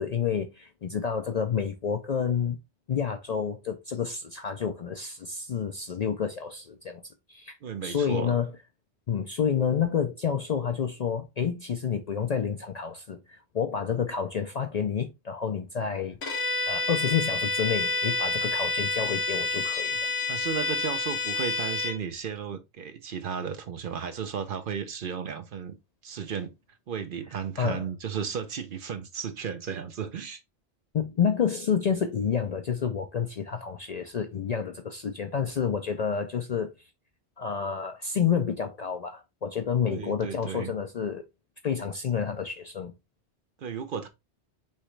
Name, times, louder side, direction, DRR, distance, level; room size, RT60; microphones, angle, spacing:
voice 1, 0.0-2.6 2.9-7.0 7.3-7.6 7.8-8.5 9.1-16.2 16.7-19.9 27.6-27.8 30.9-36.7 37.4-41.2 41.6-42.9, left 7 dB, 55° left, 0.5 m, -29 dB
voice 2, 7.6-8.3 20.3-25.8 26.0-26.5 26.9-30.4 39.9-40.7 43.6-44.1, right 7 dB, 55° right, 0.7 m, -34 dB
Bowed string instrument, 16.2-22.0, left 2 dB, 70° left, 1.5 m, -29 dB
5.5 x 3.0 x 3.1 m
omnidirectional pair, 1.1 m